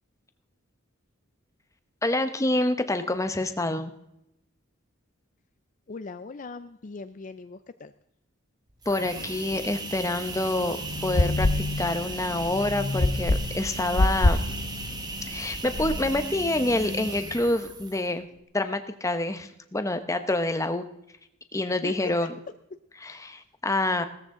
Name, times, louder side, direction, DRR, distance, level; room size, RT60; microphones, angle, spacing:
voice 1, 2.0-3.9 8.9-10.8 11.0-14.4 15.3-18.3 18.5-20.8 21.5-22.4 23.0-24.0, left 2 dB, 15° left, 9 dB, 0.9 m, -27 dB
voice 2, 5.9-7.9 21.8-21.9, left 3 dB, 40° left, 11 dB, 0.5 m, -40 dB
sound 1, 8.7-18.2, right 2 dB, 20° right, 1.4 m, -36 dB
Acoustic guitar / Strum, 9.1-12.4, left 3 dB, 80° left, 1.2 m, -52 dB
sound 2, 10.8-16.2, left 2 dB, 60° left, 0.8 m, -27 dB
17.5 x 14.0 x 3.8 m, 0.82 s
head